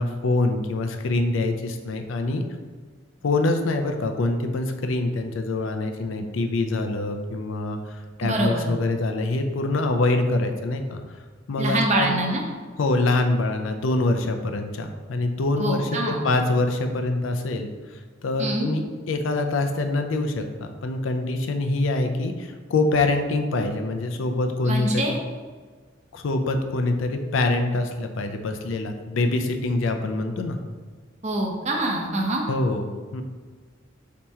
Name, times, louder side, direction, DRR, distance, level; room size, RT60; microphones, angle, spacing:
voice 1, 0.0-2.4 3.2-11.0 11.5-12.1 12.8-25.2 26.1-30.6 32.5-33.2, left 2 dB, 85° left, 6 dB, 0.4 m, -25 dB
voice 2, 8.2-8.7 11.6-12.4 15.6-16.3 18.4-18.7 24.7-25.2 31.2-32.4, right 1 dB, 35° right, 1 dB, 0.6 m, -25 dB
4.3 x 2.9 x 3.5 m, 1.5 s
head